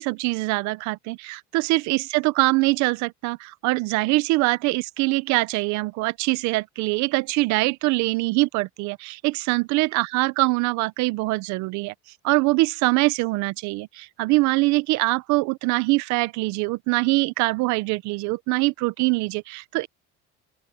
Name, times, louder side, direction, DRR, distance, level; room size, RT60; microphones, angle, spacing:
voice 1, 0.0-11.9 12.2-19.9, right 22 dB, 75° right, 0.8 m, -23 dB
open air
cardioid pair, 140°, 29 cm